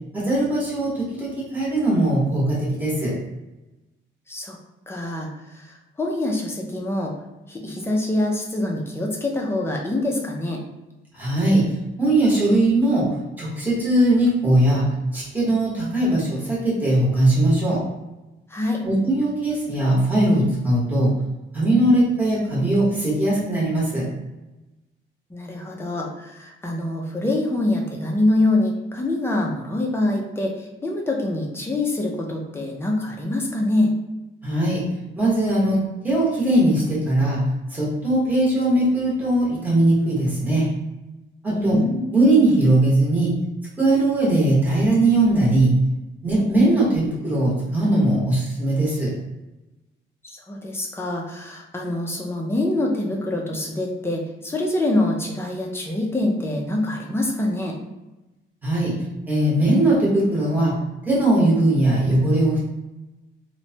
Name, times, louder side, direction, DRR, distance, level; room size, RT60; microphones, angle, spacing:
voice 1, 0.1-3.1 11.1-11.6 12.0-13.1 13.4-17.8 18.8-21.1 21.5-24.1 34.4-34.8 35.1-37.4 37.7-40.7 41.4-41.8 42.1-43.3 43.8-45.7 46.2-49.1 58.6-58.9 59.3-60.8 61.1-62.6, right 1 dB, 10° right, -7 dB, 0.9 m, -20 dB
voice 2, 4.9-7.1 7.5-10.6 18.5-18.8 25.3-33.9 41.5-42.1 50.2-57.8, left 1 dB, 10° left, -1 dB, 0.4 m, -25 dB
2.9 x 2.1 x 2.7 m, 1.0 s
wide cardioid pair, 165°, 21 cm